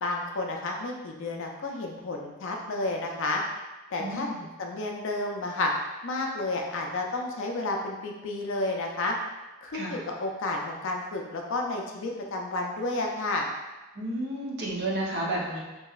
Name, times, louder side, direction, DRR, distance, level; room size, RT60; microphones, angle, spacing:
voice 1, 0.0-3.4 3.9-4.3 4.6-5.7 6.0-9.1 9.6-13.5, left 2 dB, 60° left, 1 dB, 0.4 m, -31 dB
voice 2, 4.0-4.4 9.7-10.0 13.9-15.6, right 1 dB, 50° right, -4 dB, 0.7 m, -31 dB
3.0 x 2.6 x 2.3 m, 1.1 s
head